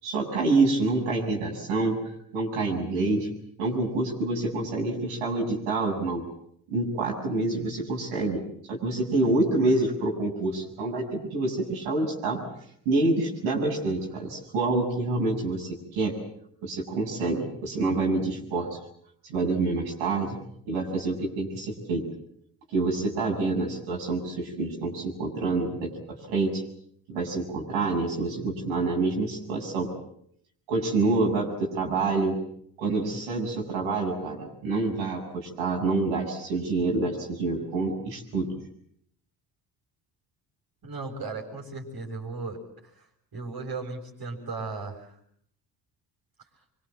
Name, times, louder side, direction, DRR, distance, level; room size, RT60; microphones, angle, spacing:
voice 1, 0.0-2.0 2.3-3.3 3.6-6.2 6.7-8.4 8.7-12.4 12.9-16.1 16.6-18.7 19.3-20.4 20.7-22.0 22.7-26.6 27.1-29.9 30.7-32.3 32.8-38.5, right 3 dB, 75° right, -1 dB, 7.4 m, -27 dB
voice 2, 40.8-43.1 43.3-45.1, right 3 dB, 50° right, 0 dB, 6.8 m, -36 dB
25.0 x 24.5 x 7.6 m, 0.69 s
hypercardioid pair, 55°, 48 cm